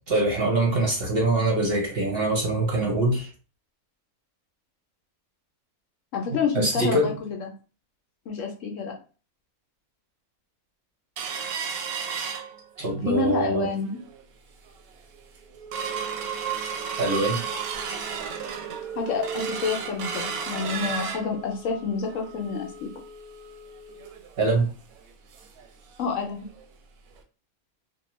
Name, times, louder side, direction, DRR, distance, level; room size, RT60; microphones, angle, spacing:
voice 1, 0.1-3.3 6.5-7.1 12.8-13.7 17.0-17.4 24.4-24.7, right 2 dB, 50° right, 0 dB, 0.8 m, -23 dB
voice 2, 6.1-7.5 8.3-9.0 13.1-14.0 19.0-23.0 26.0-26.5, left 5 dB, 70° left, 2 dB, 0.8 m, -28 dB
sound 1, 11.2-13.0 13.4-13.5 13.9-14.2 14.7-14.8 15.1-25.7 26.0-26.1 26.5-26.6 27.2-27.3, right 6 dB, 90° right, 1.1 m, -34 dB
2.6 x 2.2 x 2.9 m, 0.36 s
omnidirectional pair, 1.5 m